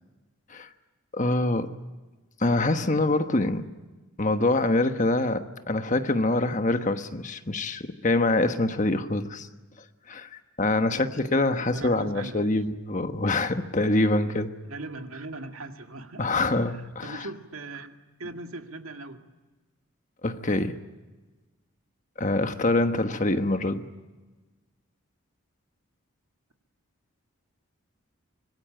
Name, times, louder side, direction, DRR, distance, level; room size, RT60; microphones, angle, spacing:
voice 1, 1.1-1.7 2.4-3.7 4.2-9.5 10.1-10.3 10.6-14.5 16.2-17.3 20.2-20.8 22.2-23.9, left 2 dB, 35° left, 8 dB, 1.2 m, -25 dB
voice 2, 11.7-12.5 14.7-16.3 16.7-17.9 18.2-19.2, right 2 dB, 75° right, 5 dB, 2.1 m, -39 dB
25.5 x 21.5 x 8.9 m, 1.2 s
head